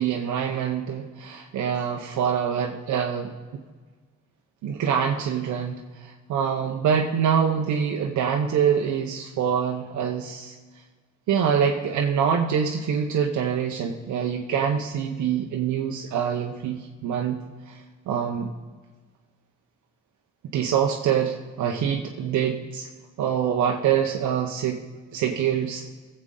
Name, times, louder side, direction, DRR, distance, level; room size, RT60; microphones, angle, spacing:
voice 1, 0.0-3.3 4.6-10.5 11.3-17.4 17.7-17.8 18.1-18.5 20.5-22.9 23.2-24.8 25.1-25.8, right 8 dB, 70° right, 2 dB, 0.8 m, -25 dB
16.0 x 7.8 x 3.8 m, 1.4 s
cardioid pair, 90°, 30 cm